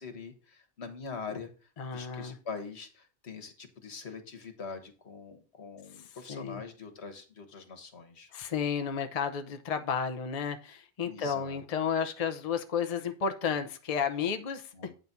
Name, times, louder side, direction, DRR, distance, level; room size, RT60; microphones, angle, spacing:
voice 1, 0.0-1.5 1.9-8.3 11.0-11.6 14.7-14.9, left 5 dB, 75° left, 6 dB, 1.6 m, -43 dB
voice 2, 1.8-2.4 5.9-6.6 8.3-14.9, left 7 dB, 40° left, 7 dB, 0.8 m, -32 dB
8.8 x 4.0 x 5.9 m, 0.36 s
omnidirectional pair, 1.1 m